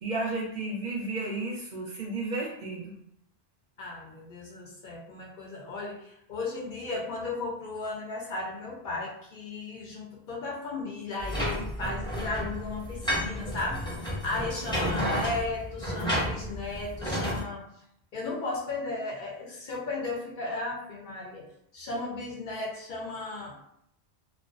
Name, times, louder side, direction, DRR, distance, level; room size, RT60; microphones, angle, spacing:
voice 1, 0.0-3.0, right 2 dB, 55° right, -3 dB, 0.6 m, -33 dB
voice 2, 3.8-13.9 14.2-17.6 18.1-21.5 21.7-23.6, left 3 dB, 60° left, -2 dB, 0.6 m, -35 dB
sound 1, 11.2-17.4, equal, 5° left, 0.6 m, -31 dB
2.3 x 2.1 x 2.4 m, 0.74 s
omnidirectional pair, 1.0 m